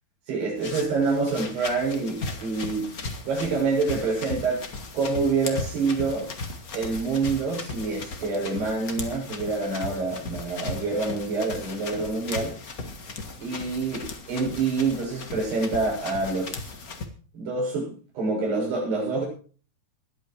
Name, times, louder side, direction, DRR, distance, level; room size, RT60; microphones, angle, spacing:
voice 1, 0.3-2.9 3.3-4.6 4.9-6.3 6.8-12.5 13.4-16.7 17.3-17.9 18.2-19.3, right 4 dB, 90° right, -2 dB, 9.1 m, -27 dB
sound 1, 0.6-17.1, left 3 dB, 80° left, 0.8 m, -37 dB
21.5 x 8.4 x 4.6 m, 0.40 s
omnidirectional pair, 4.6 m